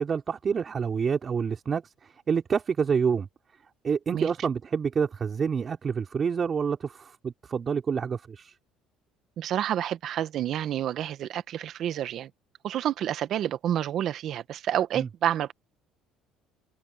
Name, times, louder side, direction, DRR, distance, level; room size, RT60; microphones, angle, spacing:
voice 1, 0.0-3.3 3.8-8.5 14.9-15.1, right 6 dB, 35° right, 4.5 m, -28 dB
voice 2, 9.4-12.3 12.6-15.5, right 11 dB, 60° right, 1.5 m, -29 dB
supercardioid pair, 95°, 0 cm